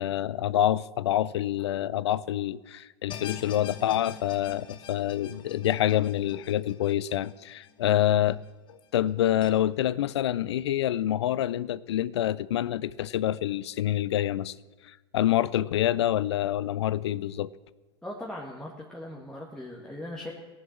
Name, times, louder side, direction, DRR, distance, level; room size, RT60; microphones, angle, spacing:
voice 1, 0.0-8.4 8.9-14.5 14.8-17.5, left 12 dB, 80° left, 0.5 m, -27 dB
sound 1, 3.1-8.3 8.7-8.8 9.4-9.5, left 8 dB, 35° left, 1.0 m, -45 dB
voice 2, 18.0-20.3, left 1 dB, 5° left, 1.8 m, -39 dB
17.5 x 7.3 x 7.3 m
hypercardioid pair, 105°, 14 cm